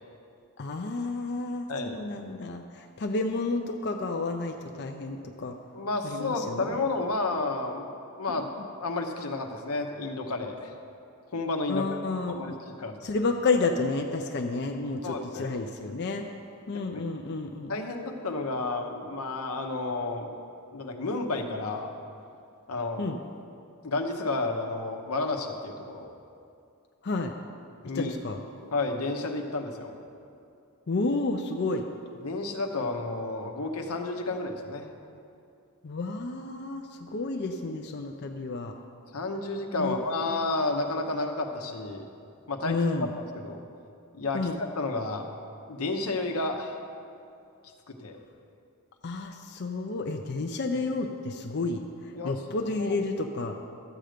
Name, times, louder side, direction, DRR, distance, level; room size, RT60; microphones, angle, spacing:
voice 1, 0.6-5.6 6.0-6.8 8.3-8.5 11.7-12.6 13.0-16.2 16.7-17.7 23.0-23.2 27.0-27.3 27.9-28.4 30.9-31.9 35.8-38.7 39.8-40.4 42.6-43.1 44.3-44.6 49.0-53.6, left 3 dB, 50° left, 3 dB, 0.5 m, -31 dB
voice 2, 1.7-2.0 5.7-7.9 8.2-8.5 8.8-10.7 11.3-11.9 12.3-13.0 15.0-15.5 16.7-17.1 17.7-20.3 20.7-21.9 22.7-23.1 23.8-26.1 27.8-28.1 28.7-29.9 32.2-34.9 39.1-42.0 42.5-42.8 43.2-43.6 44.1-45.3 45.7-46.8 47.9-48.2 52.1-52.4 52.8-53.0, left 2 dB, 90° left, 3 dB, 1.0 m, -31 dB
13.0 x 7.7 x 5.1 m, 2.5 s
head